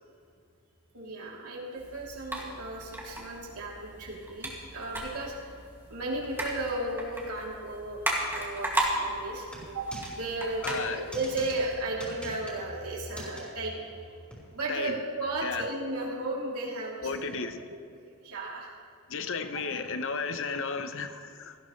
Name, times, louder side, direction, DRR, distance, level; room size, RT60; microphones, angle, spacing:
voice 1, 0.9-5.3 5.9-8.0 8.3-14.1 14.5-17.0 17.7-17.8 18.2-18.7, right 2 dB, 90° right, -4 dB, 3.2 m, -34 dB
sound 1, 1.8-11.8, right 1 dB, 10° right, 2.2 m, -36 dB
sound 2, 9.5-10.1 10.6-10.8 11.1-11.5 12.0-12.6 13.1-13.4 14.3-14.4, equal, 5° left, 3.9 m, -42 dB
voice 2, 10.6-11.0 14.7-15.0 15.4-15.7 17.0-17.7 19.1-21.6, left 4 dB, 60° left, 9 dB, 0.8 m, -33 dB
17.5 x 15.0 x 3.2 m, 2.4 s
head